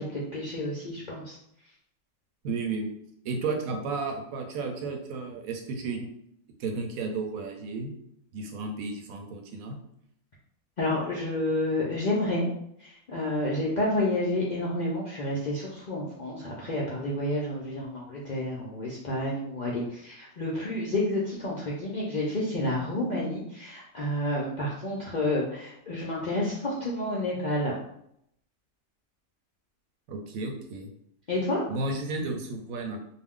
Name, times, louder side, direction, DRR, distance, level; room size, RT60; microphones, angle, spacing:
voice 1, 0.0-1.4 10.8-12.5 12.8-27.7 31.3-31.6, left 1 dB, 70° left, -5 dB, 0.4 m, -30 dB
voice 2, 2.4-3.0 3.2-6.1 6.6-8.0 8.3-9.8 30.1-30.9 31.7-33.0, right 3 dB, 80° right, 3 dB, 1.0 m, -33 dB
2.5 x 2.2 x 3.5 m, 0.74 s
omnidirectional pair, 1.4 m